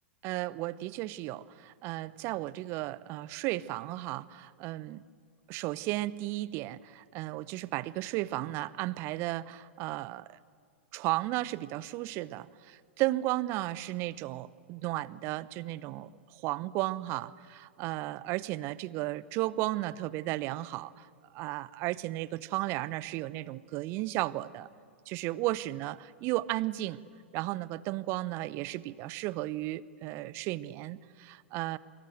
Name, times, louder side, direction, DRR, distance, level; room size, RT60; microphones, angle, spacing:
voice 1, 0.2-5.0 5.5-10.3 10.9-21.1 21.3-24.7 25.1-27.0 27.3-31.8, right 17 dB, 40° right, 20 dB, 0.8 m, -34 dB
29.5 x 24.0 x 7.7 m, 2.2 s
figure-of-eight pair, 100°, 7 cm